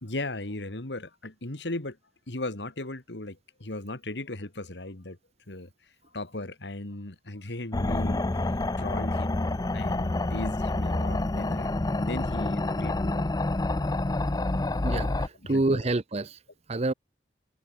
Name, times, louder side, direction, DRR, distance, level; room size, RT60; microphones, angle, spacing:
voice 1, 0.0-2.0 2.3-5.2 5.5-5.7 6.1-13.3 15.5-15.8, left 2 dB, 85° left, 2.3 m, -37 dB
sound 1, 7.7-15.3, left 2 dB, 20° left, 0.5 m, -28 dB
voice 2, 14.8-16.4 16.7-16.9, right 2 dB, 35° right, 0.8 m, -27 dB
head